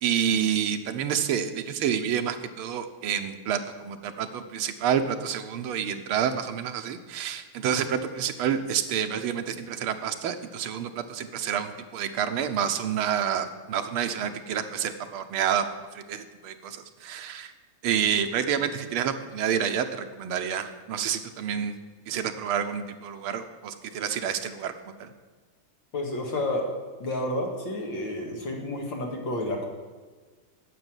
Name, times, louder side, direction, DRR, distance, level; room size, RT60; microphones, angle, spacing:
voice 1, 0.0-15.6 15.9-17.5 17.8-21.8 22.1-24.7 25.0-25.1, right 8 dB, 90° right, 7 dB, 1.7 m, -28 dB
voice 2, 25.9-26.7 27.0-29.7, left 1 dB, 65° left, 1 dB, 2.5 m, -30 dB
9.4 x 7.0 x 9.1 m, 1.4 s
omnidirectional pair, 2.3 m